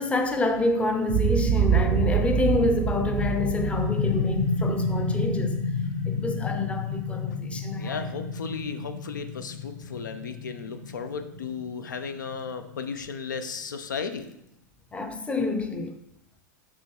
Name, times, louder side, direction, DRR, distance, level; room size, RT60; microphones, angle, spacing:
voice 1, 0.0-5.6 6.1-8.1 14.9-16.0, left 2 dB, 10° left, 0.5 m, -27 dB
Boom, 1.1-5.4, right 8 dB, 45° right, 0.5 m, -26 dB
sound 1, 2.1-13.6, left 4 dB, 45° left, 1.1 m, -31 dB
voice 2, 7.8-14.3, left 5 dB, 85° left, 0.4 m, -35 dB
5.5 x 2.9 x 2.9 m
hypercardioid pair, 100°, 10 cm